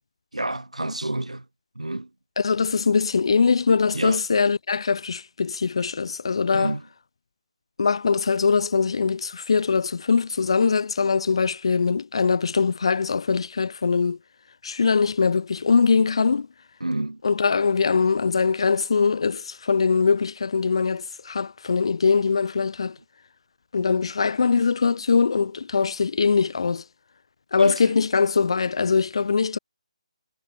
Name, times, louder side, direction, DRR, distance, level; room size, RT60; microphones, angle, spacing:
voice 1, 0.3-1.5 1.8-2.1 3.9-4.2 6.5-6.8 16.8-17.2 27.6-28.0, right 1 dB, 80° right, 1.9 m, -29 dB
voice 2, 2.4-6.7 7.8-14.2 14.6-16.5 17.2-23.0 23.7-26.8 27.5-29.6, left 5 dB, 50° left, 0.7 m, -22 dB
figure-of-eight pair, 145°, 3 cm